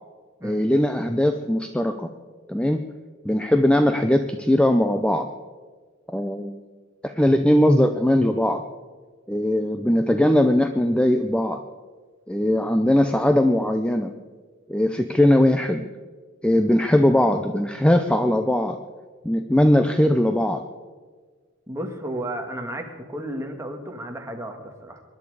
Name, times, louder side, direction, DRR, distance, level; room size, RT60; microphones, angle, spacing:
voice 1, 0.4-2.1 2.5-2.8 3.2-5.3 6.1-6.6 7.0-8.6 9.3-11.6 12.3-14.1 14.7-15.9 16.4-18.8 19.2-20.6, left 1 dB, 5° left, 7 dB, 0.5 m, -20 dB
voice 2, 21.7-25.0, right 1 dB, 15° right, 3 dB, 1.7 m, -33 dB
23.5 x 11.0 x 4.9 m, 1.5 s
head